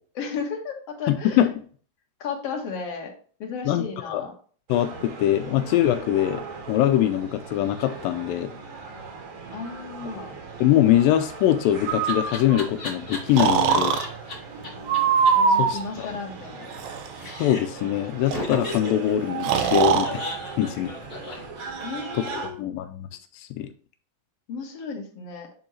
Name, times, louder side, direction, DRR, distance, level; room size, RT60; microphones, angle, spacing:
voice 1, 0.1-1.5 2.2-3.1 3.4-4.3 9.5-10.3 15.3-16.7 21.8-22.6 24.5-25.5, left 5 dB, 55° left, 1 dB, 2.1 m, -34 dB
voice 2, 1.1-1.5 3.7-4.2 4.7-8.5 10.6-13.9 15.6-15.8 17.4-20.2 20.6-20.9 21.3-21.4 22.2-23.1 23.3-23.7, left 12 dB, 80° left, 8 dB, 2.3 m, -23 dB
sound 1, 4.7-22.5, right 5 dB, 60° right, 2.4 m, -38 dB
Laughter, 11.2-14.3 14.6-14.7 14.9-15.0 15.3-15.4 15.6-16.9 17.2-17.8 18.3-22.1, left 2 dB, 30° left, 2.1 m, -36 dB
Breathing, 11.9-12.7 13.4-14.0 14.9-15.8 16.7-17.1 18.3-18.4 18.6-18.8 19.4-20.1, right 6 dB, 80° right, 2.5 m, -21 dB
10.5 x 3.7 x 3.2 m, 0.43 s
omnidirectional pair, 4.1 m